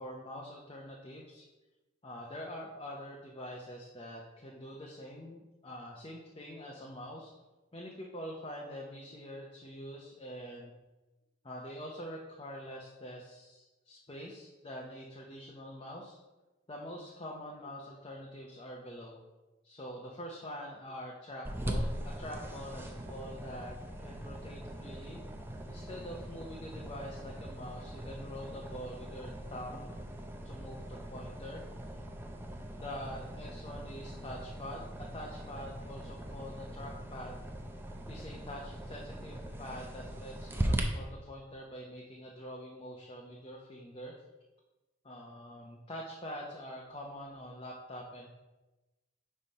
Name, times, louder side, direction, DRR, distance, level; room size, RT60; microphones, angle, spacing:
voice 1, 0.0-1.4 2.0-7.3 7.7-10.7 11.4-16.2 16.7-19.2 19.6-23.8 24.0-25.2 25.7-30.0 30.4-31.6 32.8-37.4 38.1-44.1 45.0-48.3, equal, 30° left, -2 dB, 0.7 m, -45 dB
sound 1, 21.4-40.8, right 1 dB, 10° right, 0.5 m, -40 dB
5.4 x 4.3 x 5.3 m, 1.1 s
head